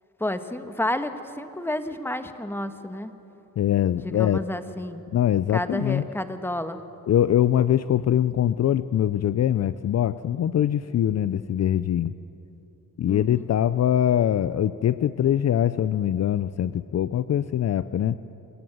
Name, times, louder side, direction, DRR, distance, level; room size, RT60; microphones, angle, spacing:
voice 1, 0.2-3.1 4.0-5.0 5.5-6.8 13.1-13.5, left 1 dB, 5° left, 9 dB, 1.4 m, -30 dB
voice 2, 3.6-4.4 5.1-6.0 7.1-12.1 13.0-18.2, left 10 dB, 50° left, 14 dB, 0.6 m, -23 dB
28.0 x 18.5 x 8.0 m, 2.9 s
cardioid pair, 90°, 35 cm